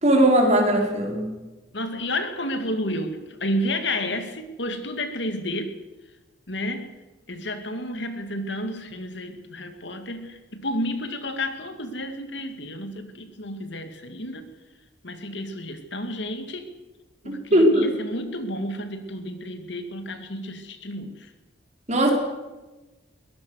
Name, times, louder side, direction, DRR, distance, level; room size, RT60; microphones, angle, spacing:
voice 1, 0.0-1.3 17.2-17.8 21.9-22.1, right 1 dB, 35° right, 1 dB, 4.5 m, -19 dB
voice 2, 1.7-5.7 6.5-6.9 7.3-14.5 15.0-16.7 17.2-21.3, left 1 dB, 65° left, 8 dB, 2.3 m, -31 dB
22.0 x 18.0 x 6.5 m, 1.1 s
head